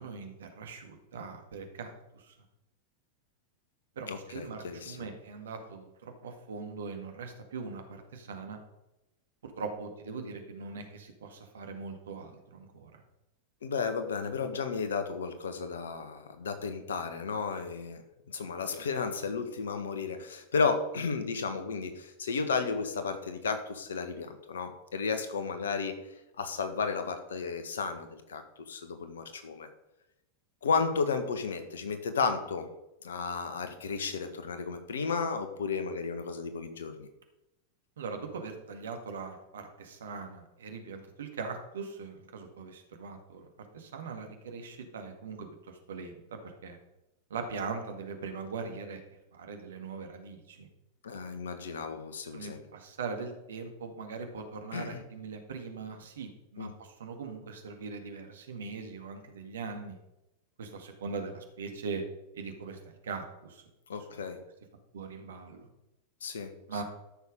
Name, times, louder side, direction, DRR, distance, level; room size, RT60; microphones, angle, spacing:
voice 1, 0.0-2.4 4.0-8.6 9.4-13.0 38.0-46.8 47.3-49.0 49.3-50.7 52.3-60.0 60.6-62.0 62.3-63.6 64.0-64.2 64.9-65.7 66.7-66.8, right 4 dB, 65° right, 5 dB, 1.9 m, -41 dB
voice 2, 4.1-5.1 13.6-26.0 26.4-29.7 30.6-32.7 33.0-37.1 51.0-52.6 54.7-55.0 56.6-56.7 63.9-64.4 66.2-66.8, left 5 dB, 65° left, 8 dB, 1.4 m, -33 dB
13.5 x 6.5 x 5.2 m, 0.90 s
figure-of-eight pair, 90°, 0 cm